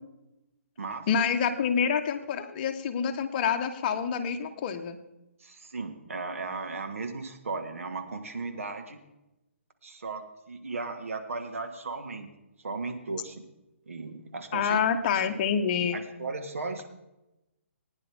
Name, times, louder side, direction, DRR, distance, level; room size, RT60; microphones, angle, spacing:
voice 1, 1.1-5.0 14.5-16.0, left 7 dB, 35° left, 7 dB, 1.1 m, -27 dB
voice 2, 5.4-9.0 9.8-12.3 12.6-13.5 13.9-14.8 15.2-15.4 15.9-16.9, right 3 dB, 75° right, 6 dB, 1.7 m, -36 dB
19.5 x 9.9 x 3.6 m, 0.95 s
figure-of-eight pair, 135°, 7 cm